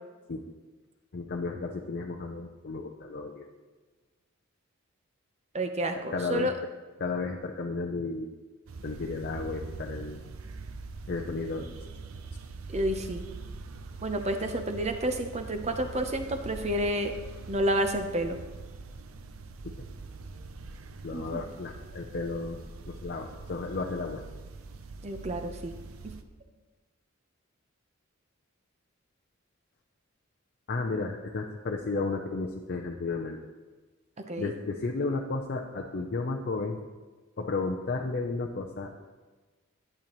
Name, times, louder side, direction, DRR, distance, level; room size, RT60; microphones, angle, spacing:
voice 1, 1.1-3.5 5.9-6.5 7.0-8.3 8.8-10.2 11.1-11.7 19.6-19.7 21.0-22.6 22.9-24.2 30.7-33.4 34.4-36.8 37.4-39.1, left 3 dB, 45° left, 1 dB, 0.5 m, -33 dB
voice 2, 5.5-6.5 12.7-13.2 14.0-17.1 17.5-18.4 21.1-21.4 25.0-25.7 26.0-26.2 34.3-34.5, right 1 dB, 30° right, 7 dB, 0.7 m, -30 dB
sound 1, 8.7-26.2, right 3 dB, 70° right, 0.6 m, -43 dB
11.5 x 8.7 x 3.0 m, 1.3 s
head